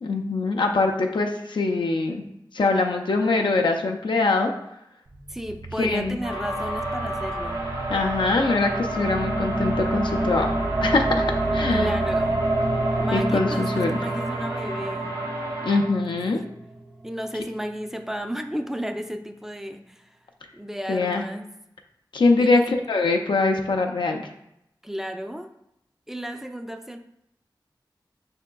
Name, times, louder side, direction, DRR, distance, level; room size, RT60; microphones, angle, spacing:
voice 1, 0.0-2.2 2.5-4.5 5.8-6.2 7.9-10.5 10.8-11.9 13.1-14.0 15.6-16.4 20.9-21.2 22.1-24.2, left 3 dB, 80° left, 3 dB, 0.4 m, -23 dB
sound 1, 5.1-17.3, right 2 dB, 55° right, 0.6 m, -28 dB
voice 2, 5.3-7.7 11.7-12.4 13.0-15.1 17.0-20.2 20.5-21.5 22.4-22.7 24.8-25.5 26.1-27.0, equal, 5° right, 7 dB, 0.4 m, -33 dB
sound 2, 6.2-15.8, right 1 dB, 85° right, 1.6 m, -32 dB
5.6 x 3.5 x 2.2 m, 0.80 s
wide cardioid pair, 50°, 8 cm